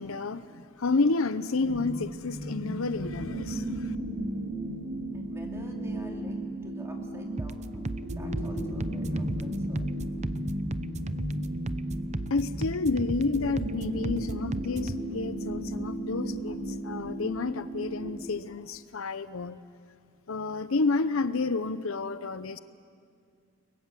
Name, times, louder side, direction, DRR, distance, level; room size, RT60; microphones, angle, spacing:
voice 1, 0.0-3.9 12.3-19.6 20.3-22.6, left 3 dB, 70° left, 13 dB, 0.7 m, -30 dB
sound 1, 1.6-18.1, right 1 dB, 75° right, 3.8 m, -35 dB
voice 2, 5.1-9.9, equal, 15° right, 0 dB, 2.9 m, -49 dB
sound 2, 7.4-15.0, right 2 dB, 30° right, 0.6 m, -36 dB
30.0 x 22.0 x 7.6 m, 2.3 s
head